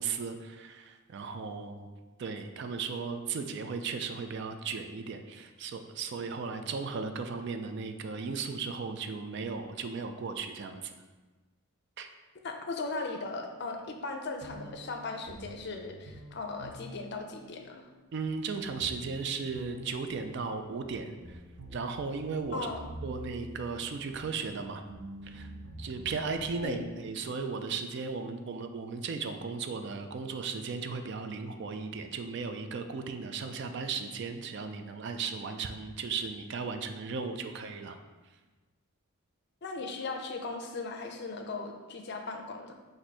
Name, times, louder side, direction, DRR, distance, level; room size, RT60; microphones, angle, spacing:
voice 1, 0.0-1.9 2.2-10.9 12.0-12.1 18.1-21.4 21.7-22.7 23.0-24.8 25.2-25.5 25.8-38.0, right 5 dB, 50° right, 7 dB, 0.3 m, -36 dB
voice 2, 12.4-17.9 22.5-22.8 26.6-26.8 39.6-42.7, left 3 dB, 50° left, 4 dB, 0.5 m, -38 dB
sound 1, 14.4-26.8, equal, 90° right, 0.7 m, -47 dB
4.5 x 2.6 x 4.2 m, 1.3 s
head